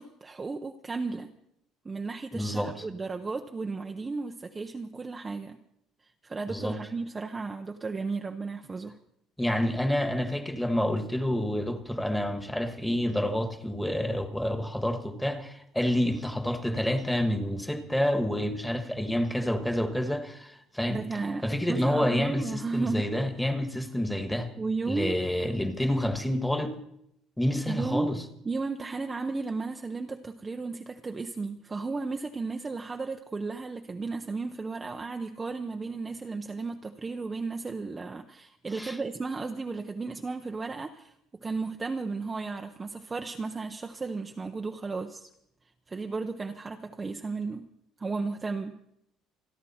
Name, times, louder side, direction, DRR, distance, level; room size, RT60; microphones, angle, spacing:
voice 1, 0.0-1.3 1.8-5.6 6.2-8.9 20.9-23.1 24.6-25.2 27.7-28.1 28.4-41.1 41.4-45.3 45.9-47.7 48.0-48.8, right 4 dB, 15° right, 0.7 m, -34 dB
voice 2, 2.3-2.7 6.5-6.8 9.4-21.0 21.4-24.5 24.9-26.7 27.4-28.2 38.8-39.0, left 1 dB, 5° left, 1.4 m, -28 dB
28.0 x 11.0 x 4.2 m
cardioid pair, 165°, 0 cm